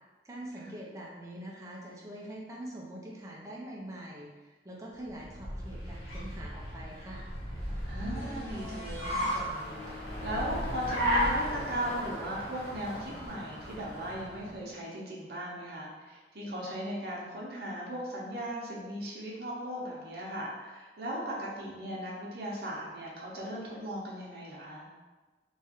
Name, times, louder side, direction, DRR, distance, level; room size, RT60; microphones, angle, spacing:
voice 1, 0.2-7.2, right 1 dB, 20° right, -3 dB, 0.4 m, -44 dB
Car, 5.1-14.6, equal, 80° left, 0.9 m, -35 dB
voice 2, 7.8-24.9, equal, 60° right, -4 dB, 0.7 m, -38 dB
sound 1, 8.1-9.4 13.3-13.4, equal, 35° left, 1.1 m, -45 dB
3.0 x 2.3 x 2.9 m, 1.3 s
head